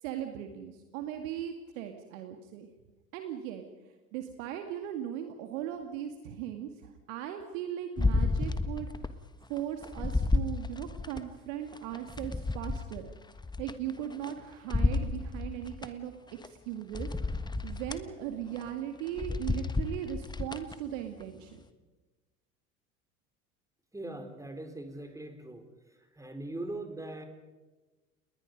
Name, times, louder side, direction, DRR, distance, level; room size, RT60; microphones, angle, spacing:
voice 1, 0.0-2.7 3.1-3.7 4.1-9.2 9.5-13.1 13.6-17.1 17.6-21.6, right 10 dB, 65° right, 5 dB, 2.1 m, -38 dB
sound 1, 8.0-9.2 9.6-11.2 11.7-14.3 14.7-15.9 16.4-16.5 16.9-18.0 18.5-18.7 19.1-20.7 21.2-21.3, left 3 dB, 10° left, 1.4 m, -31 dB
voice 2, 23.9-25.6 26.1-27.3, right 2 dB, 10° right, 6 dB, 4.0 m, -40 dB
29.5 x 21.0 x 5.3 m, 1.2 s
figure-of-eight pair, 75°, 42 cm